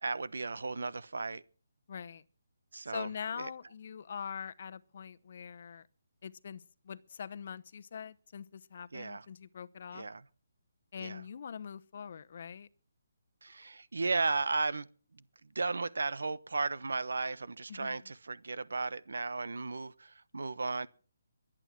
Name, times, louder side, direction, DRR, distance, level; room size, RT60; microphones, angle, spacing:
voice 1, 0.0-1.4 2.7-3.1 3.4-3.5 8.9-9.2 9.9-10.2 11.0-11.2 13.4-14.9 15.1-20.9, right 3 dB, 90° right, 1.0 m, -35 dB
voice 2, 1.9-2.2 2.9-5.9 6.2-10.0 10.9-12.7 17.7-18.0, left 7 dB, 45° left, 0.8 m, -43 dB
23.0 x 9.0 x 6.0 m
hypercardioid pair, 170°, 0 cm